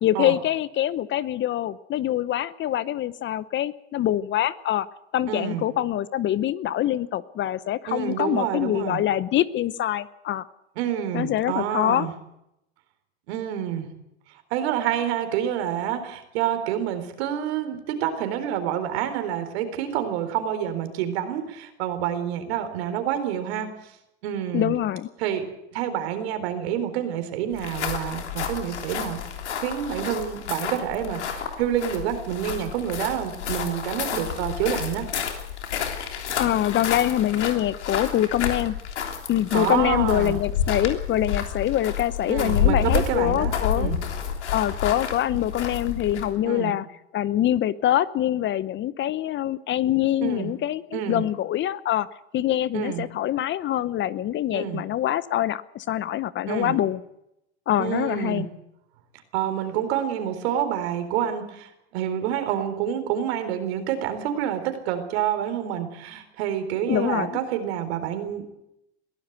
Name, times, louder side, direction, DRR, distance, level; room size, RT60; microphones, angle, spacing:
voice 1, 0.0-4.9 5.1-10.5 11.1-12.1 24.5-25.1 36.3-38.8 39.3-43.9 44.5-46.8 47.1-52.1 52.3-57.0 57.7-58.5 66.9-67.4, left 12 dB, 35° left, 17 dB, 0.9 m, -24 dB
voice 2, 5.3-5.6 7.9-9.0 10.8-12.1 13.3-13.9 14.5-23.9 24.2-24.8 25.2-29.2 29.6-35.1 39.5-40.4 42.3-44.4 46.4-46.7 50.2-50.5 50.9-51.2 52.7-53.1 54.5-54.8 56.5-56.8 57.8-58.5 59.3-68.6, right 10 dB, 70° right, 9 dB, 4.1 m, -28 dB
sound 1, 27.5-46.4, left 8 dB, 90° left, 3.4 m, -29 dB
22.0 x 15.5 x 8.1 m, 0.83 s
hypercardioid pair, 105°, 33 cm